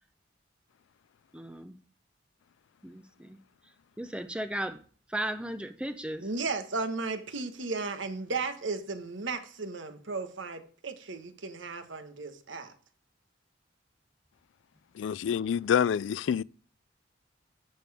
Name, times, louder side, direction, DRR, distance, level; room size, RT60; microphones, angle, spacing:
voice 1, 1.3-1.8 2.8-3.4 4.0-4.8 5.1-6.3, right 1 dB, 5° right, 0.5 m, -36 dB
voice 2, 6.2-12.7, right 3 dB, 90° right, 1.3 m, -35 dB
voice 3, 15.0-16.4, left 8 dB, 80° left, 0.3 m, -27 dB
10.0 x 6.8 x 3.5 m
head